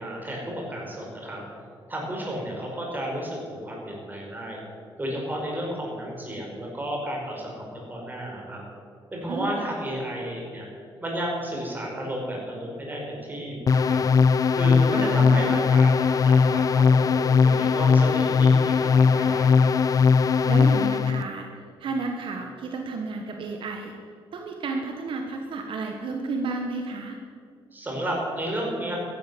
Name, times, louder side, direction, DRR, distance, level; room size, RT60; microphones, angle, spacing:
voice 1, 0.0-1.4 1.9-4.6 5.0-8.6 9.1-10.7 11.0-14.0 14.5-19.7 27.7-29.0, right 1 dB, 20° right, -1 dB, 5.1 m, -32 dB
voice 2, 9.3-9.7 14.9-15.6 20.4-21.5 21.8-23.9 24.3-27.2, right 3 dB, 60° right, 3 dB, 1.4 m, -32 dB
sound 1, 13.7-21.2, left 5 dB, 35° left, 0.5 m, -19 dB
14.0 x 11.0 x 7.8 m, 2.3 s
cardioid pair, 110°, 10 cm